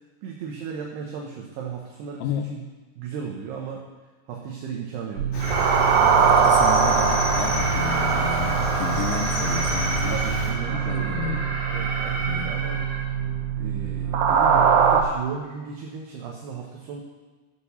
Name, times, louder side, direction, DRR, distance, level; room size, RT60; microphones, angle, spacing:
voice 1, 0.2-2.6 3.0-3.9 4.3-5.3 10.1-13.1 13.6-17.0, right 6 dB, 70° right, 0 dB, 2.7 m, -35 dB
voice 2, 2.2-2.6 6.2-10.2 10.7-11.5 12.2-12.6, left 9 dB, 90° left, 6 dB, 2.6 m, -32 dB
sound 1, 5.2-15.0, right 7 dB, 90° right, 2.0 m, -22 dB
Cricket, 5.3-10.5, left 2 dB, 50° left, 3.4 m, -30 dB
Alarm, 5.4-13.0, right 2 dB, 40° right, 3.7 m, -32 dB
13.0 x 6.6 x 7.0 m, 1.3 s
omnidirectional pair, 5.8 m